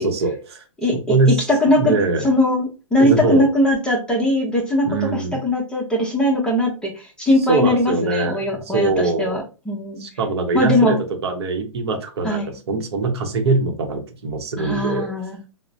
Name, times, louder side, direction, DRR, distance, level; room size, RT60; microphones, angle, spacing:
voice 1, 0.0-0.6 1.1-1.3 1.7-2.3 3.0-3.5 4.9-5.4 7.5-9.4 10.0-11.0 11.2-15.1, right 3 dB, 50° right, 4 dB, 0.8 m, -22 dB
voice 2, 0.8-6.9 7.2-10.0 10.5-11.0 12.2-12.5 14.6-15.4, left 1 dB, 5° left, -1 dB, 0.7 m, -20 dB
4.8 x 2.1 x 2.4 m, 0.32 s
figure-of-eight pair, 115°, 17 cm